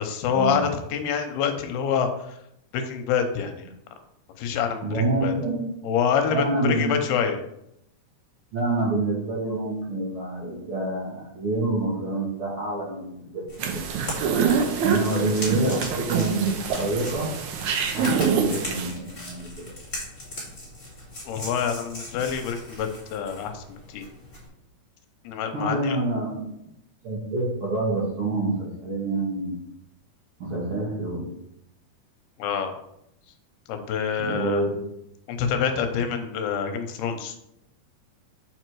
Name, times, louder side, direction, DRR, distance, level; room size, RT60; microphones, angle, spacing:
voice 1, 0.0-2.4 2.7-3.7 4.4-5.3 5.8-7.4 21.3-24.1 25.2-26.0 32.4-32.7 33.7-34.6 35.3-37.3, left 7 dB, 85° left, 6 dB, 2.8 m, -26 dB
voice 2, 4.8-5.7 6.3-7.0 8.5-13.9 14.8-16.4 16.7-17.3 17.9-19.7 25.5-26.5 27.0-29.5 30.4-31.2 34.2-34.8, right 2 dB, 65° right, -6 dB, 1.3 m, -27 dB
sound 1, 13.5-24.5, left 1 dB, 15° left, 1.7 m, -39 dB
sound 2, 13.6-18.9, right 6 dB, 80° right, 1.7 m, -25 dB
7.1 x 4.7 x 4.6 m, 0.79 s
omnidirectional pair, 4.4 m